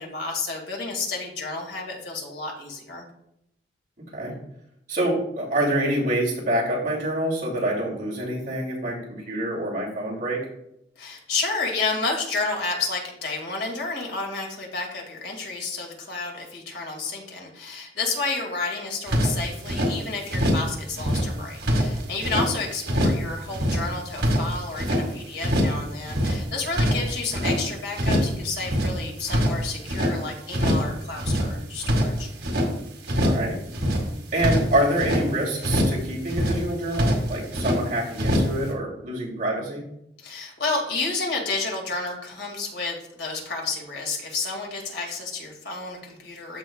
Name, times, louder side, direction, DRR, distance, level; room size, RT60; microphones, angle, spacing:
voice 1, 0.0-3.1 11.0-32.3 40.2-46.6, left 3 dB, 75° left, 0 dB, 2.1 m, -31 dB
voice 2, 4.9-9.0 9.3-10.4 33.2-33.6 34.3-39.8, right 1 dB, 45° right, -4 dB, 2.8 m, -26 dB
sound 1, 19.1-19.9 20.3-20.7 20.9-22.5 22.8-23.2 23.5-25.0 25.4-25.8 26.1-27.6 27.9-28.4 28.6-30.1 30.5-30.9 31.2-32.7 33.0-33.5 33.7-35.2 35.6-36.0 36.3-36.7 36.9-37.8 38.2-38.6, equal, 70° right, 1.9 m, -24 dB
13.5 x 5.5 x 2.3 m, 0.78 s
head